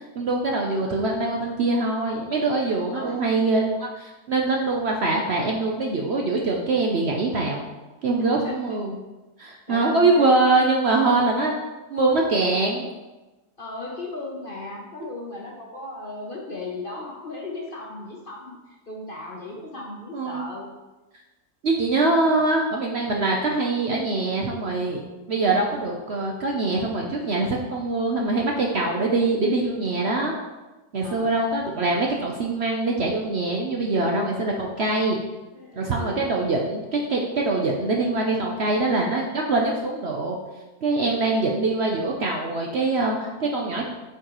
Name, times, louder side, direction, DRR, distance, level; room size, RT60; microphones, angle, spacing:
voice 1, 0.2-7.6 8.0-9.0 9.4-11.6 11.9-12.9 20.1-20.5 21.6-25.0 25.3-30.3 30.9-35.2 35.7-40.4 40.8-43.9, right 2 dB, 55° right, 0 dB, 0.8 m, -23 dB
voice 2, 9.7-10.4 13.6-20.7 22.3-22.5 31.0-31.3 35.5-36.3, left 2 dB, 45° left, -2 dB, 0.7 m, -36 dB
8.6 x 4.7 x 3.0 m, 1.1 s
omnidirectional pair, 1.6 m